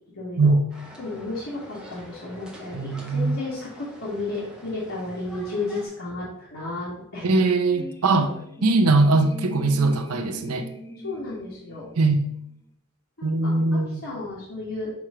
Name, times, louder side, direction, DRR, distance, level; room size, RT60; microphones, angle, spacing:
voice 1, 0.1-0.5 1.0-7.4 11.0-11.9 13.2-14.9, left 2 dB, 65° left, -8 dB, 1.7 m, -33 dB
sound 1, 0.7-5.9, equal, 5° right, 0.9 m, -46 dB
voice 2, 2.7-3.4 7.2-8.3 8.6-10.7 12.0-12.2 13.2-14.0, right 3 dB, 80° right, 6 dB, 0.7 m, -21 dB
sound 2, 7.7-12.5, left 2 dB, 10° left, 0.4 m, -39 dB
6.0 x 3.2 x 4.9 m, 0.75 s
head